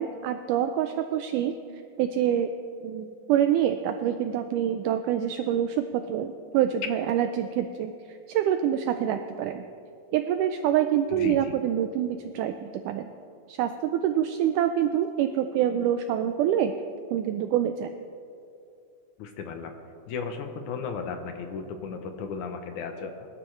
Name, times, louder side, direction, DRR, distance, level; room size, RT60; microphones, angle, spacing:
voice 1, 0.0-2.5 2.8-9.6 10.1-13.1 13.5-16.7 17.1-17.9, right 10 dB, 90° right, 8 dB, 1.8 m, -26 dB
voice 2, 11.1-11.5 19.2-19.7 20.1-23.3, left 5 dB, 75° left, 6 dB, 1.9 m, -35 dB
22.0 x 12.0 x 3.2 m, 2.6 s
omnidirectional pair, 4.2 m